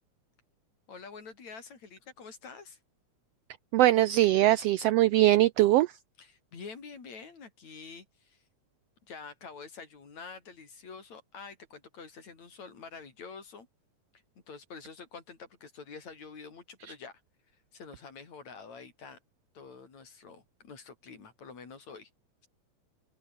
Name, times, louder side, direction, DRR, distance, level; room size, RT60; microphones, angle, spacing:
voice 1, 0.9-2.8 6.2-8.4 9.1-13.7 14.5-17.2 17.7-19.2 19.5-22.1, left 5 dB, 65° left, 5.6 m, -47 dB
voice 2, 3.7-5.9, right 15 dB, 90° right, 1.4 m, -21 dB
open air
omnidirectional pair, 3.4 m